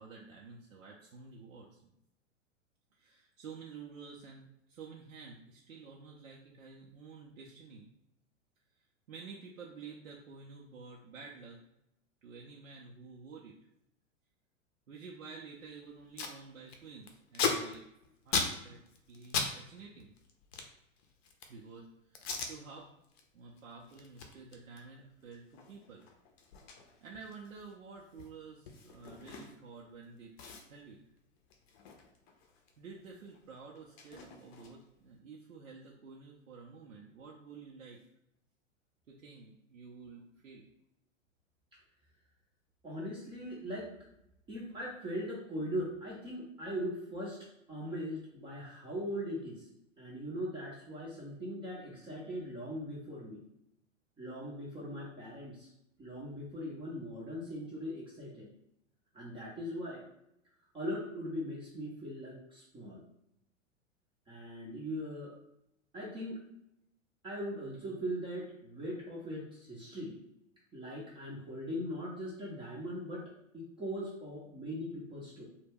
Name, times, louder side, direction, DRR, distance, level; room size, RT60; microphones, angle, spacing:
voice 1, 0.0-1.9 2.9-7.9 8.7-11.6 12.2-13.6 14.9-17.9 18.2-18.8 19.1-20.1 21.5-22.9 23.3-26.1 27.0-30.4 30.7-31.0 32.8-38.0 39.1-40.7, right 5 dB, 85° right, -3 dB, 0.5 m, -50 dB
Packing tape duct tape, 15.6-15.7 15.9-16.4 16.7-19.5 19.8-21.6 22.1-22.5 23.0-23.2 23.6-29.8 30.0-30.1 30.4-32.8 33.0-35.0, left 5 dB, 50° left, 0.6 m, -39 dB
voice 2, 42.8-43.9 44.5-47.4 47.7-49.7 50.0-53.4 54.2-55.7 56.0-58.5 59.1-60.1 60.7-63.0 64.3-65.3 65.9-66.4 67.2-70.2 70.7-75.5, equal, 15° right, -6 dB, 0.5 m, -40 dB
2.2 x 2.1 x 3.3 m, 0.79 s
hypercardioid pair, 105°, 39 cm